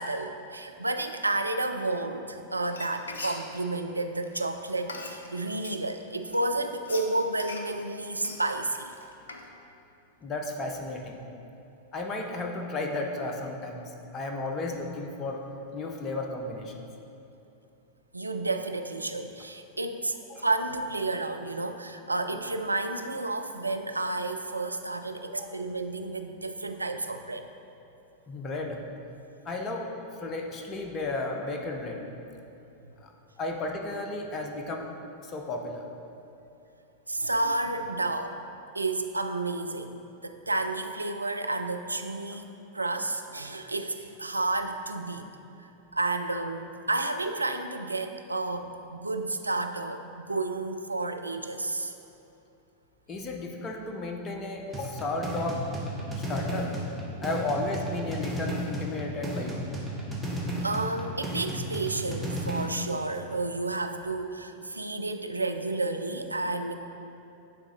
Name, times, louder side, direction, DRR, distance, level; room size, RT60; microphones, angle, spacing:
voice 1, 0.0-8.9 18.1-27.5 37.1-38.4 38.7-45.3 45.9-51.9 60.6-66.8, right 2 dB, 80° right, 7 dB, 0.3 m, -31 dB
Frying (food), 2.6-5.8 6.2-9.5, left 3 dB, 70° left, 0.5 m, -42 dB
voice 2, 10.2-11.2 11.9-15.5 15.7-16.7 20.3-20.5 25.4-25.6 28.3-28.8 29.4-29.9 30.2-32.0 33.0-33.1 33.4-34.9 35.2-35.9 53.1-55.7 56.3-56.7 57.2-59.6, left 2 dB, 25° left, 2 dB, 0.6 m, -33 dB
sound 1, 54.7-62.7, right 1 dB, 5° right, 1.0 m, -34 dB
9.2 x 3.7 x 3.8 m, 2.8 s
figure-of-eight pair, 90°, 0 cm